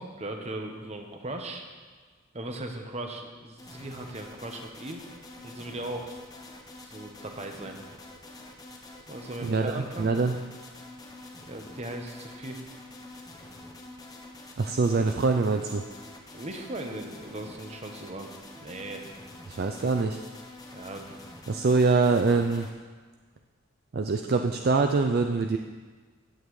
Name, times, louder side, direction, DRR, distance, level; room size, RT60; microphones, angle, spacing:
voice 1, 0.0-1.6 2.3-5.0 5.4-6.2 6.8-7.8 9.1-10.1 11.5-12.6 16.3-18.3 18.6-19.0 20.7-21.2 21.7-21.8, right 1 dB, 30° right, 4 dB, 1.0 m, -38 dB
sound 1, 3.6-22.7, left 2 dB, 20° left, 0.8 m, -46 dB
voice 2, 9.4-10.3 14.6-15.8 19.5-20.2 21.5-22.7 23.9-25.6, right 4 dB, 50° right, 5 dB, 0.4 m, -24 dB
15.0 x 8.9 x 3.2 m, 1.5 s
head